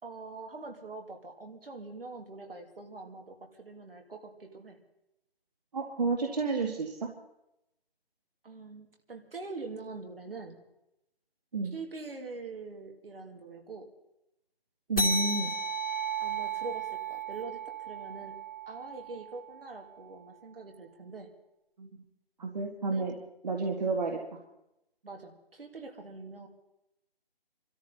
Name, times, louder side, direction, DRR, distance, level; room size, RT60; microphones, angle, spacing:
voice 1, 0.0-4.8 8.4-10.6 11.7-13.9 16.2-18.4 18.7-21.3 22.9-23.0 25.0-25.3 25.6-26.5, right 3 dB, 65° right, 3 dB, 2.9 m, -44 dB
voice 2, 5.7-7.1 11.5-11.7 14.9-15.5 21.8-21.9 22.4-23.1 23.4-24.4, right 3 dB, 40° right, 2 dB, 1.8 m, -30 dB
sound 1, 15.0-19.9, right 2 dB, 70° left, 2.8 m, -34 dB
24.5 x 13.0 x 4.0 m, 0.86 s
figure-of-eight pair, 155°, 30 cm